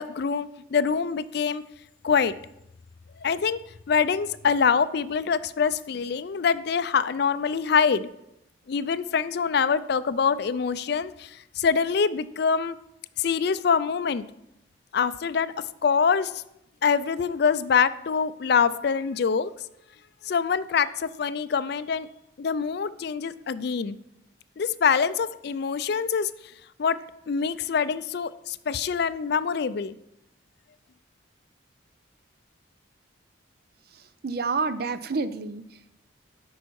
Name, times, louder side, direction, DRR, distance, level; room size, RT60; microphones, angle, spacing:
voice 1, 0.0-1.6 2.0-2.3 3.2-3.6 3.9-8.1 8.7-12.8 13.2-14.2 14.9-15.5 15.8-16.3 16.8-19.5 20.3-22.1 22.4-24.0 24.6-26.3 26.8-27.0 27.3-29.9, left 6 dB, 55° left, 15 dB, 0.4 m, -25 dB
voice 2, 33.9-35.9, right 4 dB, 50° right, 12 dB, 0.5 m, -30 dB
12.5 x 5.5 x 4.7 m, 0.82 s
head